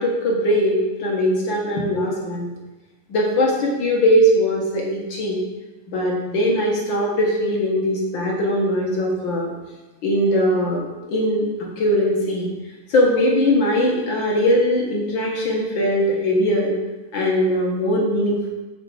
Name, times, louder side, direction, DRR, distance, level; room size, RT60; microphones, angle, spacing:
voice 1, 0.0-2.5 3.1-5.4 5.9-9.5 10.0-10.8 11.1-11.5 11.8-12.5 12.9-16.7 17.1-18.5, equal, 45° left, -2 dB, 1.8 m, -20 dB
7.8 x 4.3 x 6.6 m, 1.1 s
omnidirectional pair, 3.5 m